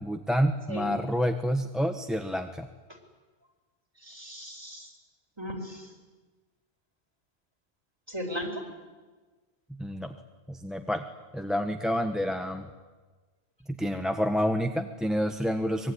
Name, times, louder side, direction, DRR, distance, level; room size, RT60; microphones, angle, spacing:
voice 1, 0.0-2.7 9.7-10.2 10.5-11.1 11.3-12.7 13.7-15.9, equal, ahead, 6 dB, 1.1 m, -28 dB
voice 2, 4.0-4.9 5.4-5.9 8.1-8.6, equal, 25° right, 2 dB, 5.0 m, -36 dB
24.5 x 22.5 x 9.8 m, 1.3 s
omnidirectional pair, 1.1 m